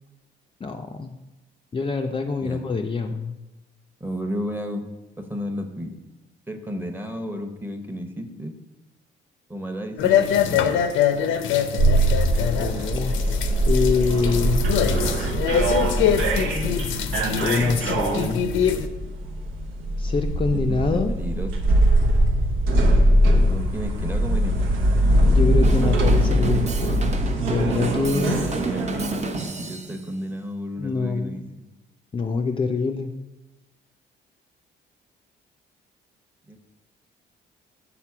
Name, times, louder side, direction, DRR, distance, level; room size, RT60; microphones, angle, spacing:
voice 1, 0.6-1.1 1.7-3.4 12.6-13.2 13.7-14.6 17.4-18.4 20.0-21.1 25.3-27.1 27.5-28.4 30.8-31.4 32.1-33.1, left 4 dB, 25° left, 3 dB, 0.4 m, -25 dB
voice 2, 4.0-4.9 5.2-6.0 6.5-8.6 9.5-10.7 20.7-21.5 23.5-24.6 28.1-31.7 36.5-36.6, equal, 10° right, 5 dB, 0.8 m, -32 dB
sound 1, 10.0-18.9, left 9 dB, 80° left, 0.6 m, -24 dB
sound 2, 11.8-29.2, right 1 dB, 85° right, 0.9 m, -21 dB
Drum kit / Drum, 25.6-30.0, right 3 dB, 35° right, 0.7 m, -33 dB
6.0 x 4.0 x 5.8 m, 1.1 s
cardioid pair, 90°, 20 cm